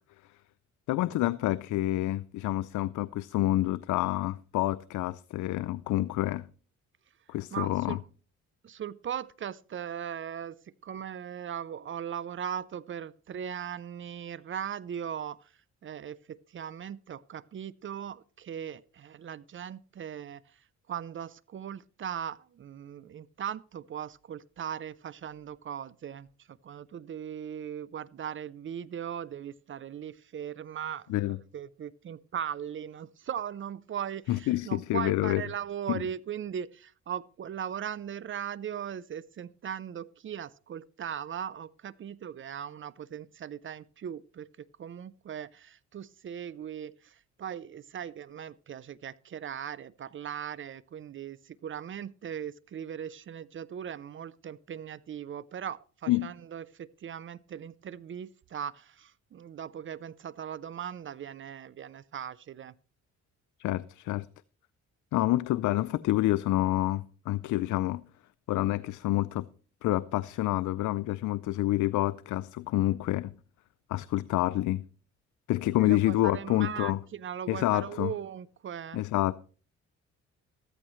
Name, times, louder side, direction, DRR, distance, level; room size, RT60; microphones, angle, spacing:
voice 1, 0.9-6.5 7.3-8.0 31.1-31.4 34.3-35.4 35.9-36.0 56.1-56.3 63.6-64.3 65.1-68.0 68.5-69.5 69.8-73.3 73.9-74.8 75.5-77.0 77.5-78.1 78.9-79.3, left 16 dB, 75° left, 0.5 m, -28 dB
voice 2, 7.5-8.0 8.6-15.5 15.8-20.6 20.9-62.7 75.8-79.0, right 9 dB, 40° right, 0.5 m, -39 dB
14.0 x 14.0 x 3.1 m
cardioid pair, 90°, 30 cm